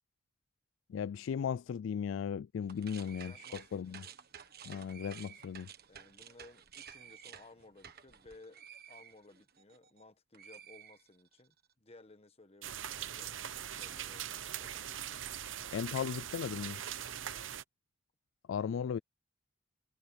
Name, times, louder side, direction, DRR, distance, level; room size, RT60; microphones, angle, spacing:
voice 1, 0.9-4.0 4.6-5.7 15.7-16.8 18.5-19.0, left 7 dB, 75° left, 0.3 m, -36 dB
sound 1, 2.6-10.0 10.3-11.5, right 8 dB, 50° right, 1.5 m, -53 dB
voice 2, 3.2-4.1 5.9-8.6 8.9-15.0 17.1-17.4, left 2 dB, 30° left, 1.4 m, -58 dB
sound 2, 12.6-17.6, right 10 dB, 70° right, 0.9 m, -41 dB
head